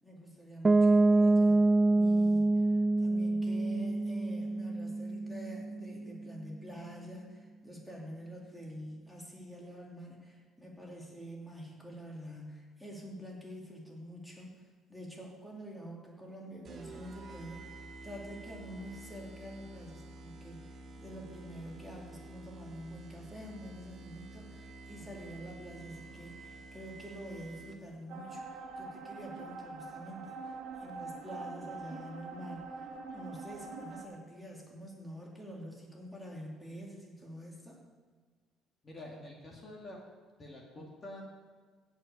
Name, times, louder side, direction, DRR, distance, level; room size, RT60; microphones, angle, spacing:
voice 1, 0.0-32.9 33.1-37.8, equal, ahead, -3 dB, 2.5 m, -47 dB
Piano, 0.6-6.3, right 2 dB, 15° right, 0.3 m, -26 dB
sound 1, 16.7-28.0, right 2 dB, 35° right, 1.5 m, -50 dB
sound 2, 28.1-34.0, right 4 dB, 75° right, 1.6 m, -44 dB
voice 2, 38.8-40.0 40.4-41.2, left 1 dB, 25° left, -1 dB, 2.1 m, -47 dB
15.5 x 5.6 x 8.4 m, 1.5 s
cardioid pair, 145°, 0 cm